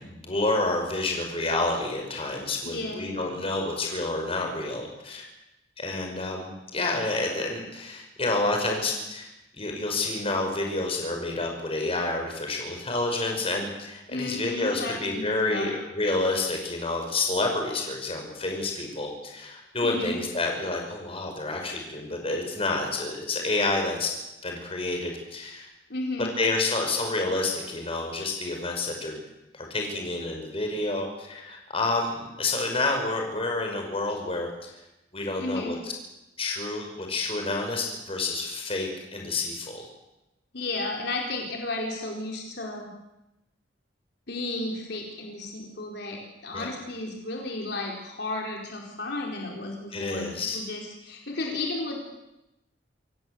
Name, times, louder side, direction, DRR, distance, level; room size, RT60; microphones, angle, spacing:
voice 1, 0.0-5.2 5.8-9.3 9.5-24.1 24.4-25.7 26.2-29.2 29.5-34.7 35.1-35.9 36.4-39.8 46.5-46.7 49.9-50.6, left 2 dB, 30° left, 2 dB, 5.6 m, -29 dB
voice 2, 2.6-3.1 14.1-15.7 19.8-20.2 25.9-26.3 35.4-35.7 40.5-42.9 44.3-50.3 50.5-52.0, left 2 dB, 65° left, 0 dB, 4.4 m, -33 dB
27.5 x 17.5 x 8.0 m, 0.95 s
head